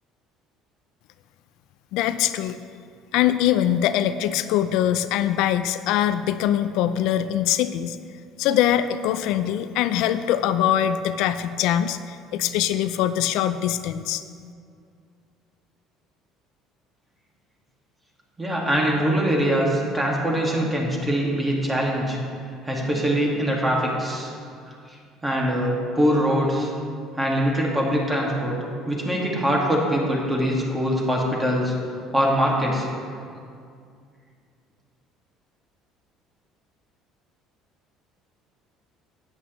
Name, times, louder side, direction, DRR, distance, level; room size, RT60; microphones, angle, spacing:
voice 1, 1.9-2.6 3.1-8.0 8.4-14.2, left 11 dB, 75° left, 11 dB, 0.3 m, -23 dB
voice 2, 18.4-22.2 22.6-24.3 25.2-26.7 27.2-28.6 28.9-31.7 32.1-32.9, equal, 15° right, -2 dB, 1.9 m, -23 dB
12.0 x 8.9 x 3.1 m, 2.3 s
cardioid pair, 120°, 0 cm